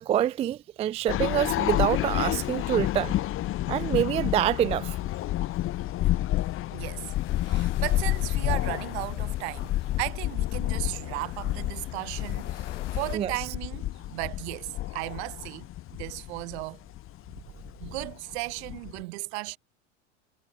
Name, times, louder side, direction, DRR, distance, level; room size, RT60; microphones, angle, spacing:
voice 1, 0.0-3.1 3.7-4.9 13.1-13.5, right 11 dB, 20° right, 0.3 m, -26 dB
sound 1, 1.1-19.0, left 15 dB, 35° left, 1.5 m, -30 dB
voice 2, 6.7-7.1 7.4-15.7 15.9-16.8 17.8-19.6, right 25 dB, 65° right, 4.7 m, -35 dB
sound 2, 7.0-13.2, left 13 dB, 85° left, 7.2 m, -48 dB
supercardioid pair, 120°, 35 cm